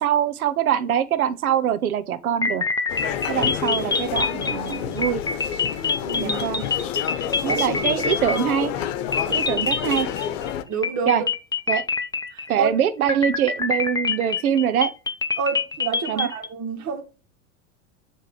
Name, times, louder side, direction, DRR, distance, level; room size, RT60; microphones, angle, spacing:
voice 1, 0.0-2.6 3.3-5.2 6.2-6.6 7.4-8.7 9.3-10.1 11.1-11.2 11.7-11.8 12.5-14.9 16.1-16.3, right 9 dB, 85° right, 0.9 m, -23 dB
sound 1, 2.4-8.8 9.1-10.5 10.8-12.7 13.1-16.5, left 4 dB, 10° left, 0.7 m, -26 dB
sound 2, 2.9-10.6, left 9 dB, 65° left, 1.0 m, -29 dB
voice 2, 6.0-6.4 7.4-7.8 10.7-11.3 12.3-12.7 15.4-17.0, right 5 dB, 40° right, 2.1 m, -29 dB
7.5 x 3.4 x 4.9 m
hypercardioid pair, 90°, 42 cm